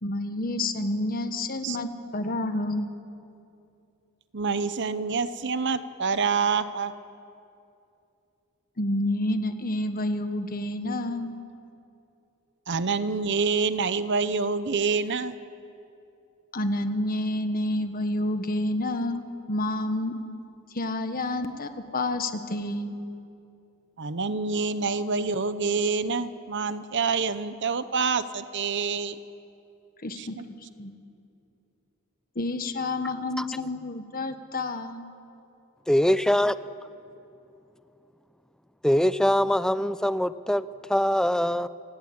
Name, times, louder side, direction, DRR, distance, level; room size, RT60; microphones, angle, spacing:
voice 1, 0.0-2.9 8.8-11.3 16.5-20.1 20.7-22.9 30.0-30.4 30.8-30.9 32.3-35.0, left 1 dB, 40° left, 8 dB, 1.5 m, -29 dB
voice 2, 4.3-6.9 12.7-15.4 24.0-29.2 30.1-30.4, right 4 dB, 55° right, 13 dB, 0.8 m, -27 dB
voice 3, 33.0-33.5 35.9-36.6 38.8-41.7, equal, 5° left, 14 dB, 0.5 m, -23 dB
28.5 x 18.0 x 8.8 m, 2.7 s
head